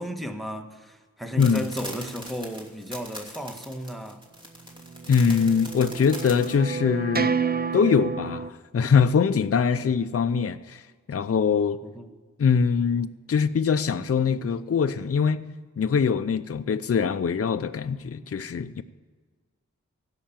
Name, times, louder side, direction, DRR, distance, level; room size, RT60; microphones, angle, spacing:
voice 1, 0.0-4.2 9.7-9.9 11.8-12.1, equal, ahead, 1.4 m, -34 dB
sound 1, 1.4-6.5, equal, 15° right, 2.7 m, -40 dB
sound 2, 4.9-8.5, right 5 dB, 30° right, 0.5 m, -29 dB
voice 2, 5.1-7.3 7.7-10.8 11.1-11.8 12.4-15.4 15.8-18.8, left 6 dB, 50° left, 0.6 m, -23 dB
16.0 x 5.8 x 8.9 m
cardioid pair, 50°, 31 cm